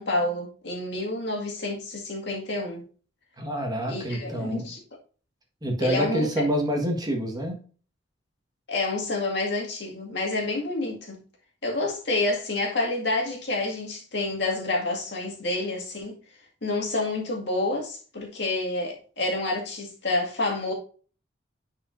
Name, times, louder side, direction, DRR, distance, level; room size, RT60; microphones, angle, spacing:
voice 1, 0.0-2.8 3.9-4.8 5.8-6.3 8.7-11.2 11.6-16.2 16.6-20.7, left 2 dB, 65° left, 2.0 m, -28 dB
voice 2, 3.4-4.7 5.6-7.6, equal, 20° right, 1.5 m, -27 dB
9.9 x 4.9 x 2.6 m
head